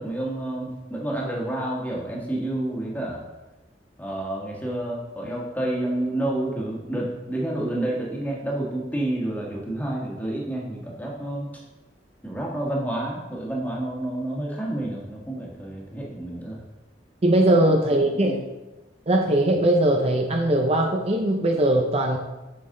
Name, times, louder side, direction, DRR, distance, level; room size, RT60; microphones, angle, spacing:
voice 1, 0.0-3.2 4.0-11.5 12.2-16.6 17.4-17.5 18.1-18.4, right 1 dB, 10° left, -3 dB, 1.5 m, -29 dB
voice 2, 17.2-18.4 19.1-22.2, right 1 dB, 35° right, 3 dB, 0.6 m, -20 dB
7.5 x 6.1 x 3.8 m, 1.1 s
head